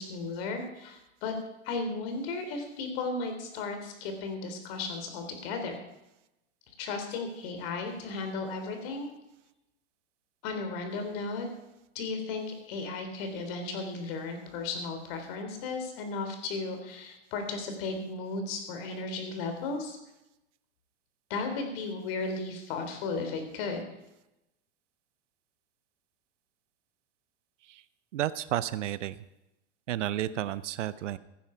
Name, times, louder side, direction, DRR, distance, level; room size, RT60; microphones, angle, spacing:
voice 1, 0.0-1.3 1.6-5.8 6.8-9.1 10.4-11.5 12.0-20.0 21.3-23.9, left 3 dB, 55° left, 5 dB, 3.5 m, -35 dB
voice 2, 28.1-29.2 29.9-31.2, right 12 dB, 85° right, 16 dB, 0.7 m, -31 dB
14.5 x 10.5 x 5.0 m, 0.93 s
hypercardioid pair, 130°, 35 cm